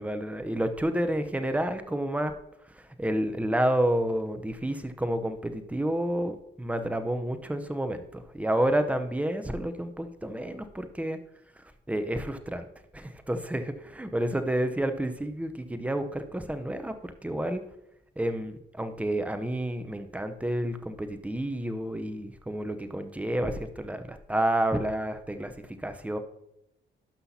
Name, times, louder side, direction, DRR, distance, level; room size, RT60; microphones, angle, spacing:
voice 1, 0.0-2.3 2.7-11.2 11.9-12.7 12.9-17.6 18.2-25.5 25.8-26.2, right 1 dB, 5° right, 8 dB, 0.7 m, -30 dB
11.5 x 5.8 x 2.8 m, 0.82 s
cardioid pair, 90°, 20 cm